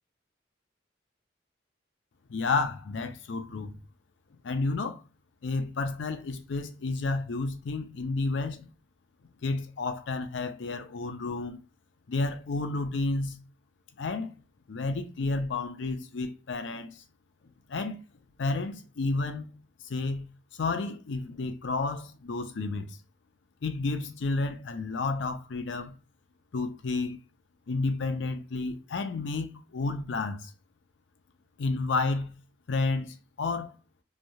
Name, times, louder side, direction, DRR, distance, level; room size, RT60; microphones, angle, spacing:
voice 1, 2.3-3.7 4.4-5.0 5.4-8.7 9.4-11.6 12.1-13.4 14.0-14.3 14.7-16.9 17.7-18.0 18.4-19.5 19.8-20.3 20.6-23.0 23.6-25.9 26.5-27.2 27.7-30.5 31.6-32.4 32.7-33.7, left 3 dB, 90° left, 0.5 m, -31 dB
3.1 x 2.3 x 2.6 m
head